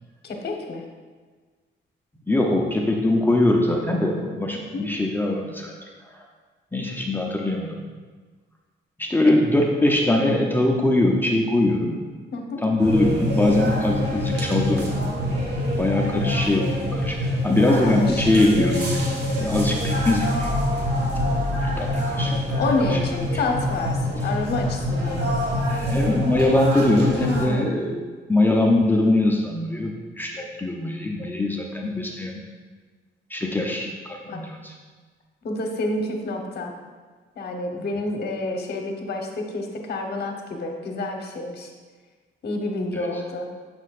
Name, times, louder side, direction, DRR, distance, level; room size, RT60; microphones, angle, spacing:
voice 1, 0.2-0.8 4.5-4.9 9.2-9.3 12.3-12.6 17.7-18.3 22.6-25.3 27.1-27.7 34.2-34.4 35.4-36.7 37.4-41.7 42.4-43.5, left 2 dB, 55° left, 2 dB, 1.0 m, -28 dB
voice 2, 2.3-5.7 6.1-6.2 6.7-7.8 9.0-12.0 12.6-15.1 15.8-19.1 19.4-20.6 21.8-22.6 22.9-23.0 23.3-23.4 24.2-24.3 25.7-28.0 28.3-32.4 33.3-34.7 37.7-37.9 42.9-43.2, left 2 dB, 10° left, 0 dB, 0.6 m, -22 dB
sound 1, 12.8-27.4, left 1 dB, 60° right, 1.4 m, -25 dB
7.2 x 6.1 x 2.5 m, 1.4 s
cardioid pair, 120°, 20 cm